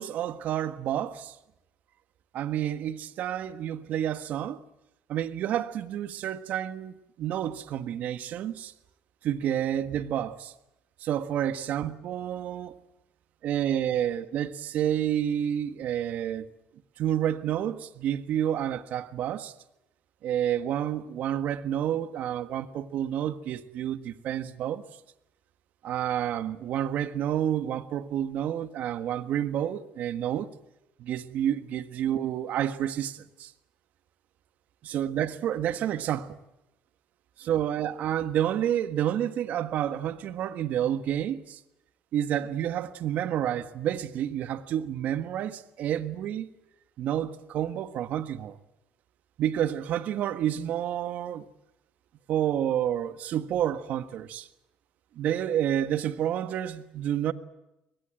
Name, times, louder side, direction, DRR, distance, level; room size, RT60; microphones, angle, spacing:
voice 1, 0.0-1.3 2.3-4.6 5.1-8.7 9.2-10.5 11.0-12.8 13.4-16.5 17.0-19.5 20.2-24.8 25.8-30.5 31.0-33.5 34.8-36.4 37.4-41.6 42.1-46.5 47.0-48.6 49.4-51.5 52.3-54.5 55.1-57.3, right 10 dB, 65° right, 1.5 m, -29 dB
23.0 x 20.5 x 9.0 m
supercardioid pair, 85°, 3 cm